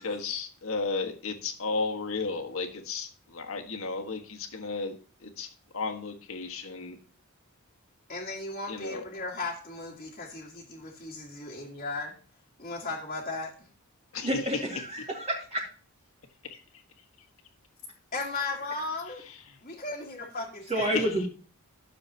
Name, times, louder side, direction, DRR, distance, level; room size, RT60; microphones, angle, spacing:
voice 1, 0.0-4.9 5.2-5.5 5.7-7.0 8.7-9.0 14.1-14.3 16.5-16.6 20.8-21.0, left 4 dB, 70° left, 3 dB, 1.7 m, -33 dB
voice 2, 8.1-12.1 12.6-13.5 18.1-19.2 19.6-21.1, left 3 dB, 35° left, -4 dB, 1.9 m, -36 dB
voice 3, 14.2-15.6 20.7-21.3, right 1 dB, 30° right, -3 dB, 2.3 m, -29 dB
13.0 x 7.0 x 2.9 m, 0.39 s
head